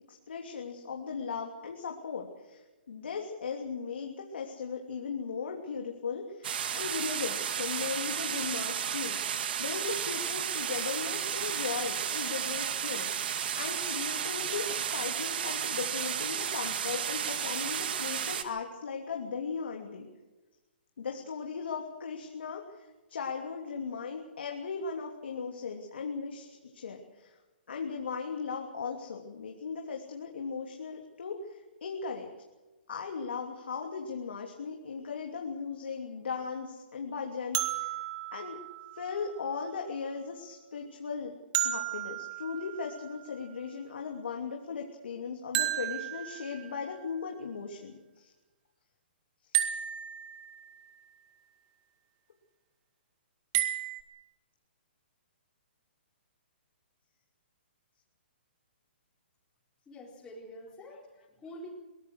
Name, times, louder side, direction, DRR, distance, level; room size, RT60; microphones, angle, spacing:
voice 1, 0.3-9.2 9.6-20.1 21.0-27.4 27.7-32.3 32.9-37.9 38.3-38.6 38.9-41.3 41.6-48.3, left 5 dB, 75° left, 1 dB, 3.1 m, -37 dB
sound 1, 6.4-18.4, right 8 dB, 60° right, 2.0 m, -33 dB
sound 2, 37.5-39.5 41.5-43.3 45.5-46.9 49.5-50.8 53.5-54.0, right 13 dB, 35° right, 1.9 m, -33 dB
voice 2, 59.9-61.7, equal, 10° left, -6 dB, 4.4 m, -47 dB
23.5 x 19.0 x 6.6 m, 1.1 s
hypercardioid pair, 140°, 6 cm